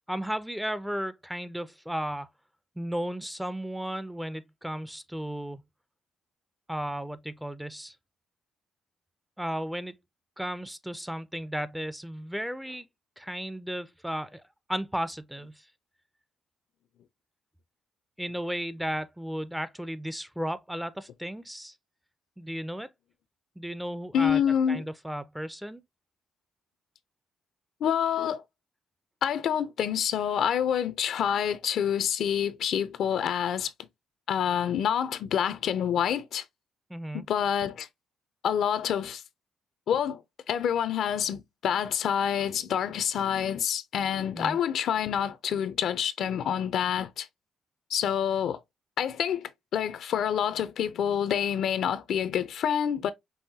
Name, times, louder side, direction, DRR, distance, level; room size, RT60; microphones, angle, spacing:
voice 1, 0.1-2.3 2.8-5.6 6.7-8.0 9.4-9.9 10.4-12.9 13.2-14.4 14.7-15.7 18.2-21.7 22.4-22.9 23.6-24.4 24.7-25.8 36.9-37.2 44.3-44.6, equal, 5° right, 0.4 m, -34 dB
voice 2, 24.1-24.8 27.8-28.4 29.2-33.7 34.3-36.4 37.1-37.9 38.4-39.2 39.9-40.2 40.5-47.3 47.9-48.6 49.0-53.1, left 8 dB, 70° left, 0.5 m, -27 dB
5.5 x 2.6 x 2.7 m
cardioid pair, 90°, 0 cm